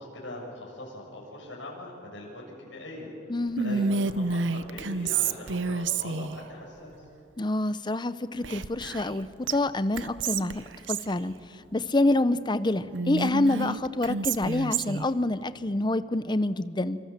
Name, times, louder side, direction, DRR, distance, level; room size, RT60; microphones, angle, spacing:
voice 1, 0.0-7.1, left 1 dB, 80° left, -2 dB, 7.5 m, -42 dB
voice 2, 3.3-4.0 7.4-11.3 11.7-17.0, left 2 dB, 25° left, 14 dB, 0.7 m, -27 dB
Whispering, 3.6-6.4 8.4-9.2 9.5-9.6 10.0-11.1 12.9-15.1, right 4 dB, 75° right, 0.8 m, -29 dB
27.5 x 26.0 x 7.4 m, 2.6 s
head